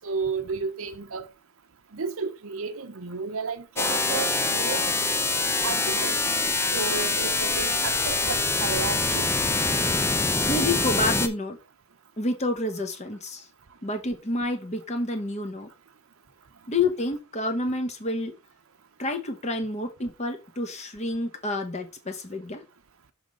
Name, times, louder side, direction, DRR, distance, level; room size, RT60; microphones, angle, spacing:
voice 1, 0.0-1.2 1.9-5.0 5.6-6.2 6.7-9.2, right 5 dB, 65° right, 0.7 m, -32 dB
sound 1, 3.8-11.3, left 3 dB, 10° left, 0.4 m, -25 dB
voice 2, 10.5-11.6 12.2-13.5 13.8-15.7 16.7-18.3 19.0-22.6, left 2 dB, 30° left, 1.0 m, -29 dB
6.2 x 3.8 x 4.8 m
head